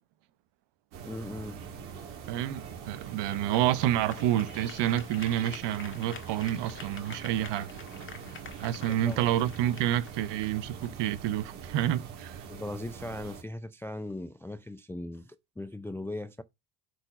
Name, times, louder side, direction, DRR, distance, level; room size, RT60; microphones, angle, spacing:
sound 1, 0.9-13.4, right 7 dB, 80° right, 3.1 m, -44 dB
voice 1, 1.1-1.6 8.9-9.3 12.5-16.4, left 1 dB, 5° left, 0.4 m, -39 dB
sound 2, 1.8-11.7, left 5 dB, 25° left, 1.7 m, -50 dB
voice 2, 2.3-7.7 8.6-12.4, right 12 dB, 60° right, 1.1 m, -29 dB
7.9 x 4.5 x 5.8 m
supercardioid pair, 80°, 49 cm